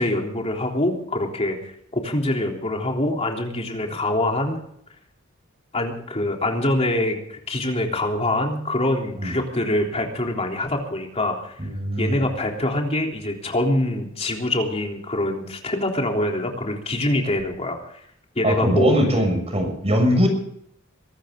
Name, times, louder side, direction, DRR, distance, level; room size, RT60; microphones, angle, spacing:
voice 1, 0.0-4.6 5.7-11.5 12.0-17.8 18.4-18.9, left 1 dB, 30° left, 1 dB, 3.5 m, -24 dB
voice 2, 11.6-12.2 18.4-20.3, equal, 30° right, 4 dB, 6.6 m, -21 dB
23.5 x 13.0 x 3.8 m, 0.69 s
head